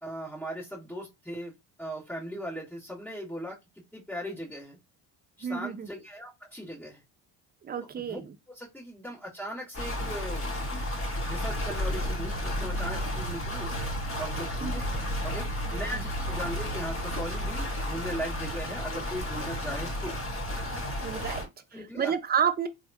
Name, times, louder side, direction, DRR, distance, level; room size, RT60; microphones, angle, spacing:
voice 1, 0.0-3.6 3.9-4.8 5.4-7.0 8.0-8.2 8.5-10.5 11.2-13.7 14.2-14.9 15.2-20.2 21.7-22.1, equal, ahead, 1.8 m, -38 dB
voice 2, 5.4-5.9 7.6-8.3 14.6-14.7 15.9-16.0 21.0-22.7, right 7 dB, 20° right, 0.5 m, -30 dB
sound 1, 9.7-21.5, equal, 25° left, 1.9 m, -32 dB
3.3 x 2.4 x 2.8 m
supercardioid pair, 90°, 48 cm